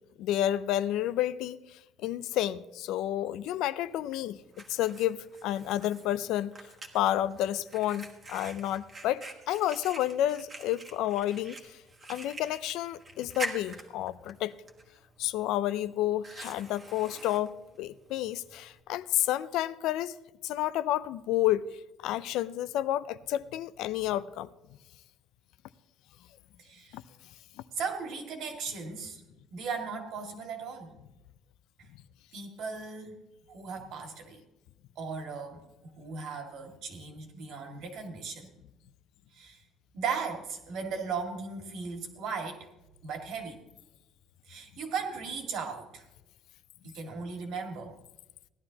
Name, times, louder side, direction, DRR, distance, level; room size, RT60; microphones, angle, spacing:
voice 1, 0.2-4.4 4.7-6.5 6.9-11.8 12.1-14.5 15.2-20.2 20.4-24.5 26.9-27.0 31.9-32.0, left 13 dB, 70° left, 0.4 m, -30 dB
Fire, 3.8-18.8, right 2 dB, 25° right, 1.3 m, -46 dB
voice 2, 26.6-27.0 27.7-29.2 29.5-30.9 31.8-31.9 32.3-33.2 33.5-34.4 35.0-35.6 36.0-38.5 39.3-39.6 39.9-42.7 43.0-43.6 44.5-46.1 46.8-47.9, right 5 dB, 60° right, 2.0 m, -37 dB
17.0 x 11.5 x 2.9 m
cardioid pair, 150°, 0 cm